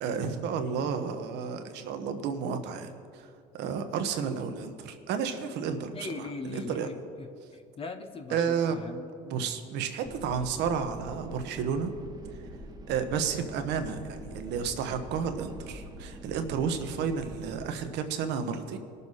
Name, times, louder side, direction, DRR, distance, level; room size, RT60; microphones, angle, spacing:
voice 1, 0.0-3.3 3.5-6.1 6.4-6.9 8.3-8.8 9.2-11.9 12.9-18.8, right 6 dB, 70° right, 7 dB, 1.2 m, -31 dB
voice 2, 5.9-7.3 7.5-9.1, left 3 dB, 30° left, 7 dB, 0.9 m, -40 dB
sound 1, 10.0-17.6, right 1 dB, 20° right, 1.2 m, -45 dB
20.5 x 6.9 x 4.2 m, 2.4 s
cardioid pair, 105°, 18 cm